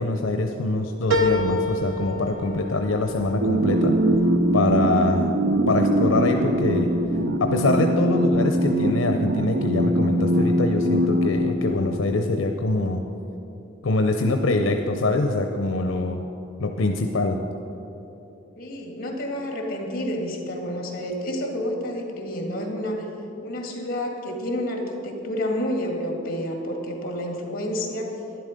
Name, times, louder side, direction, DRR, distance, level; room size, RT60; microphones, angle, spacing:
voice 1, 0.0-4.0 4.5-5.3 5.7-6.9 7.4-13.0 13.8-16.2 16.6-17.4, left 2 dB, 85° left, 4 dB, 0.7 m, -24 dB
sound 1, 1.1-5.9 6.3-7.0 7.4-7.5, left 1 dB, 85° right, 1.1 m, -29 dB
sound 2, 3.4-12.4, right 1 dB, 55° right, 0.5 m, -22 dB
voice 2, 18.6-23.1 23.4-28.2, left 1 dB, 50° left, 2 dB, 1.8 m, -29 dB
11.0 x 10.5 x 5.2 m, 3.0 s
head